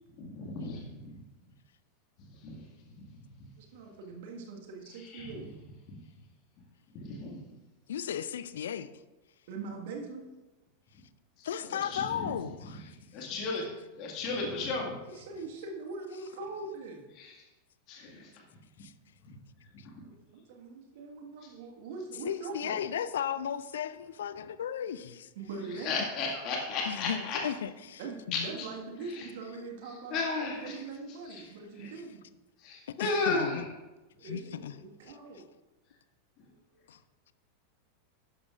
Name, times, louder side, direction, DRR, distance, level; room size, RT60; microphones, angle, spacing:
voice 1, 0.2-1.2 2.3-2.6 2.9-3.0 4.9-5.4 5.9-6.0 6.9-7.4 11.4-12.3 12.6-12.7 13.1-13.7 14.0-15.0 17.2-17.3 17.9-18.3 19.2-19.4 19.7-20.1 21.4-21.5 25.7-27.4 28.3-28.7 29.1-29.3 30.1-30.8 31.3-31.4 31.8-31.9 32.6-33.7, left 3 dB, 45° left, 0 dB, 1.9 m, -35 dB
voice 2, 3.6-5.5 9.5-10.3 15.0-17.0 20.0-22.9 25.3-26.0 28.0-32.2 34.2-35.5, right 3 dB, 55° right, 2 dB, 1.6 m, -42 dB
voice 3, 7.9-8.9 11.4-13.0 18.8-18.9 19.8-19.9 22.2-25.3 26.9-28.0 28.3-28.5 33.0-33.6 34.2-34.7 35.0-35.1 36.9-37.0, left 9 dB, 65° left, 14 dB, 0.5 m, -35 dB
12.0 x 10.5 x 2.5 m, 1.1 s
figure-of-eight pair, 90°, 0 cm